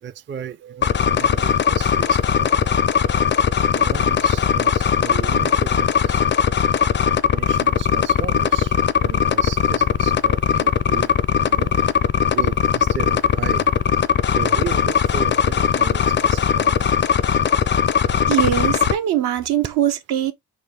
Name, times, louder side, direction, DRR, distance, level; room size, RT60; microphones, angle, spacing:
voice 1, 0.0-2.7 3.6-6.2 7.3-11.2 11.5-11.8 12.3-13.7 14.3-16.9, right 8 dB, 30° right, 0.4 m, -35 dB
sound 1, 0.6-9.1, right 10 dB, 55° right, 1.2 m, -49 dB
sound 2, 0.8-18.9, left 7 dB, 30° left, 0.4 m, -19 dB
voice 2, 18.3-20.3, right 11 dB, 70° right, 0.8 m, -21 dB
3.9 x 2.2 x 3.3 m
supercardioid pair, 55°, 40 cm